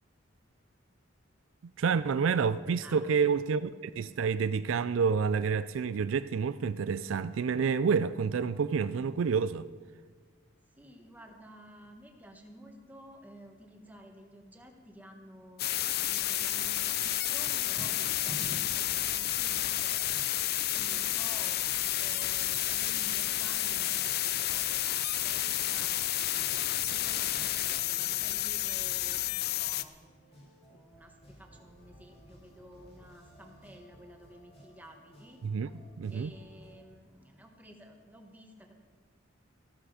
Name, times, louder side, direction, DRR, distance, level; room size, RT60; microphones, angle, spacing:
voice 1, 1.8-9.7 35.4-35.7 36.0-36.3, right 6 dB, 75° right, 0.4 m, -28 dB
voice 2, 2.8-3.3 10.8-24.9 25.2-26.5 26.9-30.1 30.7-35.5 36.1-38.7, right 1 dB, 10° right, 1.5 m, -53 dB
sound 1, 15.6-29.8, left 13 dB, 50° left, 0.5 m, -31 dB
sound 2, 17.1-36.7, equal, 30° left, 3.9 m, -57 dB
sound 3, 17.6-18.9, equal, 40° right, 1.5 m, -43 dB
14.0 x 13.0 x 5.0 m
head